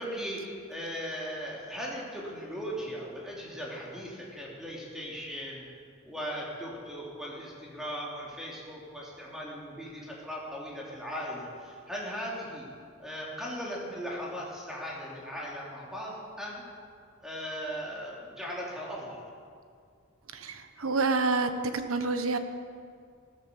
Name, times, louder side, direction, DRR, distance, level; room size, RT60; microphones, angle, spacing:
voice 1, 0.0-5.7 6.1-12.7 13.0-16.6 17.2-19.2, equal, 5° right, -4 dB, 3.4 m, -38 dB
voice 2, 20.3-22.4, right 3 dB, 80° right, 9 dB, 1.1 m, -28 dB
15.0 x 13.0 x 7.0 m, 2.2 s
head